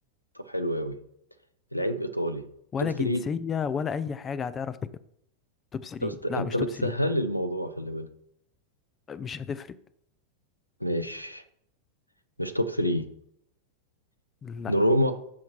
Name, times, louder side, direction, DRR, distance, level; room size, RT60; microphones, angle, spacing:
voice 1, 0.4-1.0 1.7-2.4 2.8-3.2 6.0-8.1 10.8-11.4 12.4-13.0 14.7-15.1, equal, 90° left, 11 dB, 0.8 m, -27 dB
voice 2, 2.7-4.8 5.7-6.9 9.1-9.8 14.4-14.7, left 6 dB, 20° left, 15 dB, 0.5 m, -32 dB
13.5 x 5.8 x 4.5 m, 0.73 s
figure-of-eight pair, 90°, 0 cm